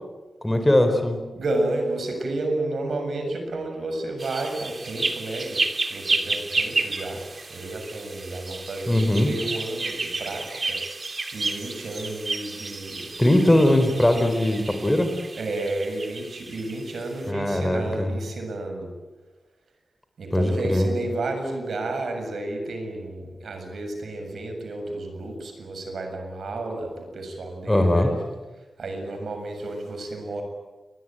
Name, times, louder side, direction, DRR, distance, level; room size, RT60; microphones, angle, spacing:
voice 1, 0.4-1.2 8.9-9.3 13.2-15.1 17.3-18.1 20.3-20.9 27.7-28.1, left 1 dB, 10° left, 7 dB, 4.2 m, -20 dB
voice 2, 1.3-5.6 5.9-7.2 7.5-10.8 11.3-13.1 15.4-18.9 20.2-28.2 28.8-30.4, right 2 dB, 85° right, 4 dB, 7.3 m, -31 dB
sound 1, 4.2-17.1, right 3 dB, 40° right, 2.8 m, -31 dB
28.5 x 22.0 x 9.1 m, 1.2 s
wide cardioid pair, 95°, 0 cm